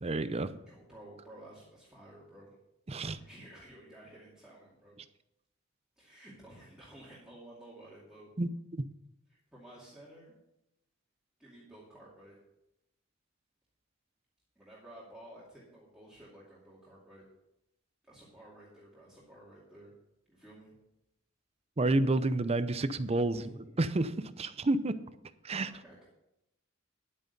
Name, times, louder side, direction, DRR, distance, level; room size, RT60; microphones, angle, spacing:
voice 1, 0.0-0.5 2.9-3.2 8.4-8.5 21.8-23.4 23.8-25.0 25.4-25.7, right 2 dB, 30° right, 13 dB, 0.6 m, -29 dB
voice 2, 0.6-2.5 3.2-5.0 6.0-8.3 9.3-10.3 11.4-12.4 14.6-17.3 18.0-19.9 20.3-20.7 23.3-23.7 25.7-26.1, right 1 dB, 5° right, -7 dB, 2.4 m, -53 dB
10.5 x 9.1 x 5.4 m, 0.85 s
head